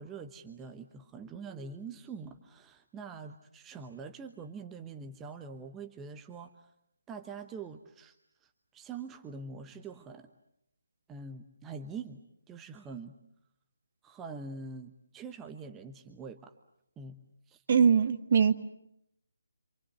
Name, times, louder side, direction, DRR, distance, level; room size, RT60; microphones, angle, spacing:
voice 1, 0.0-6.7 7.1-8.1 8.4-10.3 11.1-13.1 14.0-16.5 17.0-17.2 17.5-17.6, right 4 dB, 10° right, 6 dB, 1.1 m, -44 dB
voice 2, 17.7-18.5, right 6 dB, 40° right, 9 dB, 1.4 m, -22 dB
27.5 x 27.0 x 8.1 m, 0.78 s
figure-of-eight pair, 145°, 0 cm